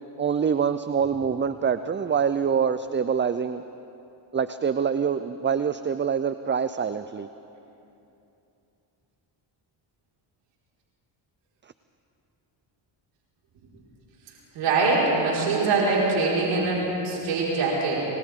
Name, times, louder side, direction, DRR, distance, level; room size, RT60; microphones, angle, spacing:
voice 1, 0.2-3.6 4.3-7.3, right 7 dB, 25° right, 12 dB, 0.5 m, -25 dB
voice 2, 14.5-18.1, right 3 dB, 90° right, -5 dB, 5.2 m, -23 dB
29.0 x 24.5 x 3.8 m, 2.8 s
cardioid pair, 70°, 50 cm